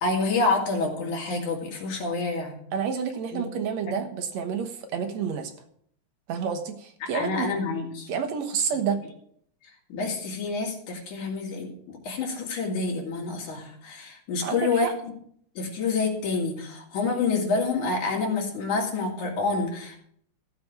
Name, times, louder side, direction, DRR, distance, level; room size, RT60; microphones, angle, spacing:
voice 1, 0.0-2.6 3.3-3.4 3.9-4.0 7.0-8.1 8.7-8.8 9.9-15.1 15.6-20.0, left 3 dB, 80° left, 0 dB, 4.2 m, -28 dB
voice 2, 2.7-5.5 6.3-7.5 8.1-9.0 14.4-14.9, right 7 dB, 65° right, 6 dB, 2.4 m, -29 dB
14.5 x 7.8 x 6.1 m, 0.65 s
omnidirectional pair, 3.4 m